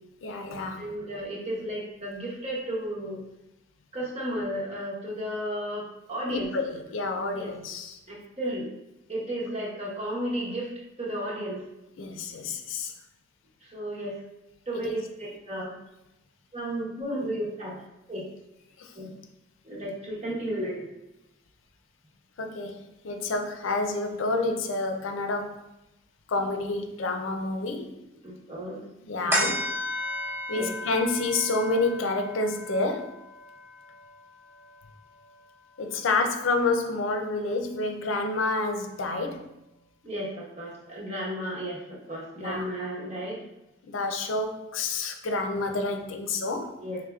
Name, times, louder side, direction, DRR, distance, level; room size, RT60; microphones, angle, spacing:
voice 1, 0.2-0.9 6.3-8.0 12.0-12.9 14.7-15.0 18.8-18.9 22.4-25.6 26.3-27.9 29.0-29.6 30.5-33.1 35.8-39.5 42.4-42.7 43.8-46.8, left 3 dB, 90° left, 5 dB, 0.5 m, -29 dB
voice 2, 0.8-3.2 3.9-6.5 7.3-7.5 8.1-8.7 9.1-10.7 11.0-11.6 13.7-14.2 14.7-15.7 16.5-17.8 18.1-18.3 18.9-19.1 19.6-20.8 26.4-26.5 28.2-28.8 29.2-29.5 30.5-30.7 40.0-43.4 46.8-47.0, equal, 35° right, -5 dB, 1.1 m, -33 dB
sound 1, 29.3-36.1 36.5-36.6, equal, 10° right, 0.9 m, -34 dB
4.8 x 3.4 x 2.3 m, 0.92 s
head